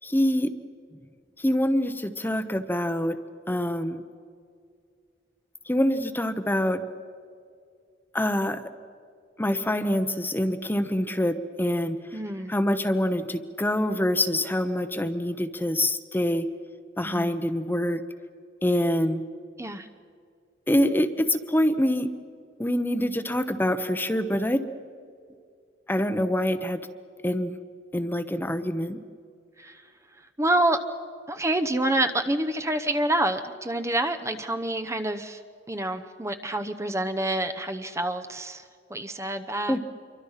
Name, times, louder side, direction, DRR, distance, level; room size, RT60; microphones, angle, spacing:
voice 1, 0.0-0.5 1.4-3.2 3.5-4.0 5.7-6.8 8.1-8.6 9.4-12.0 12.5-16.5 17.0-18.0 18.6-19.2 20.7-22.1 22.6-24.6 25.9-26.8 27.2-27.5 27.9-29.0 39.7-39.8, left 1 dB, 10° left, 9 dB, 0.9 m, -25 dB
voice 2, 12.1-12.5 17.1-17.3 19.6-19.9 29.6-29.8 30.4-30.8 31.3-35.4 35.7-38.6 38.9-39.8, right 1 dB, 15° right, 7 dB, 0.8 m, -27 dB
27.5 x 24.0 x 5.7 m, 2.2 s
head